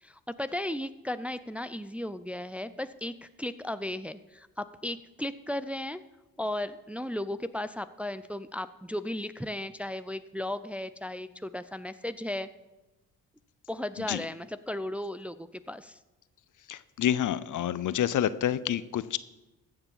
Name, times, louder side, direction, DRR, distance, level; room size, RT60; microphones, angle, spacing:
voice 1, 0.0-6.0 6.4-12.5 13.7-16.0, left 1 dB, 5° right, 12 dB, 0.5 m, -35 dB
voice 2, 16.7-19.2, left 11 dB, 50° left, 16 dB, 0.6 m, -28 dB
14.5 x 6.9 x 5.6 m, 1.1 s
hypercardioid pair, 55°, 39 cm